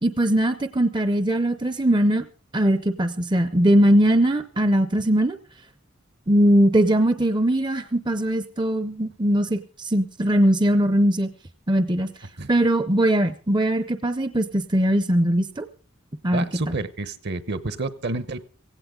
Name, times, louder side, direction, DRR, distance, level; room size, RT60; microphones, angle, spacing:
voice 1, 0.0-2.3 2.5-5.4 6.3-11.3 11.7-12.1 12.5-15.7 16.2-16.7, right 1 dB, 20° right, 10 dB, 0.6 m, -20 dB
voice 2, 16.3-18.4, right 2 dB, 55° right, 14 dB, 1.0 m, -29 dB
16.5 x 16.5 x 3.8 m, 0.36 s
head